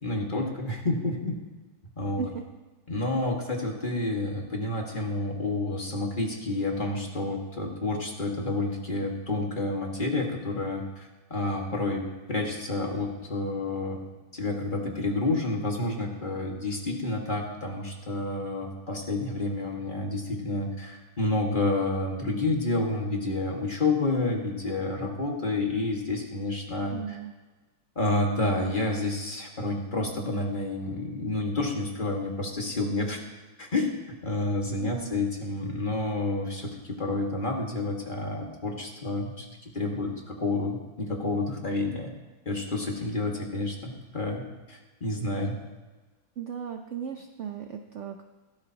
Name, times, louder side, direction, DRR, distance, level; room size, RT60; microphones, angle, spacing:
voice 1, 0.0-1.4 2.0-2.3 2.9-12.0 12.3-14.0 14.3-27.2 28.0-33.2 33.6-33.9 34.2-36.7 37.0-39.5 39.7-42.1 42.5-45.6, left 2 dB, 25° left, 0 dB, 1.8 m, -29 dB
voice 2, 26.9-27.3 34.8-35.2 46.4-48.2, right 7 dB, 75° right, 5 dB, 0.6 m, -36 dB
16.5 x 13.0 x 2.9 m, 1.2 s
omnidirectional pair, 2.1 m